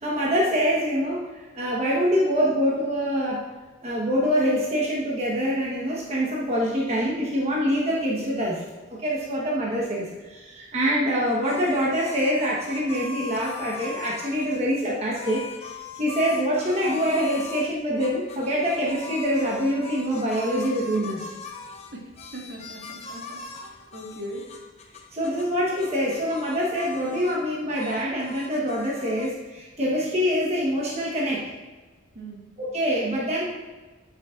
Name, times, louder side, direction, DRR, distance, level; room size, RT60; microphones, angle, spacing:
voice 1, 0.0-3.4 3.8-8.6 8.9-21.3 25.1-31.4 32.6-33.4, equal, 35° right, -4 dB, 1.2 m, -25 dB
sound 1, 11.2-14.6 15.2-17.7 18.0-25.5 25.8-27.4 27.7-29.3, left 5 dB, 30° left, 0.8 m, -41 dB
voice 2, 22.3-23.4 23.9-24.5 32.1-32.4, right 1 dB, 60° right, -1 dB, 1.6 m, -38 dB
12.0 x 6.3 x 2.5 m, 1.3 s
head